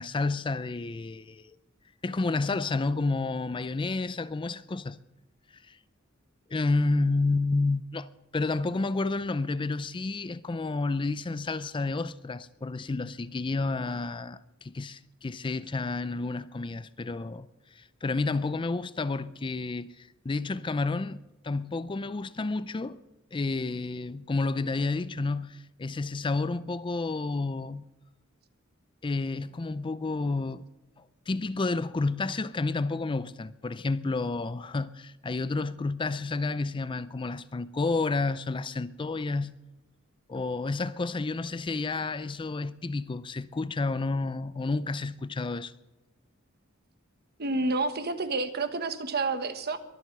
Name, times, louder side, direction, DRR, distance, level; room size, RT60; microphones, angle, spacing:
voice 1, 0.0-1.6 2.0-5.0 5.5-5.8 6.5-23.0 23.3-27.8 29.0-30.6 31.0-39.5 40.3-45.7, left 3 dB, 25° left, 0.4 m, -30 dB
voice 2, 47.4-49.8, right 3 dB, 50° right, 1.3 m, -29 dB
22.5 x 7.8 x 6.6 m
head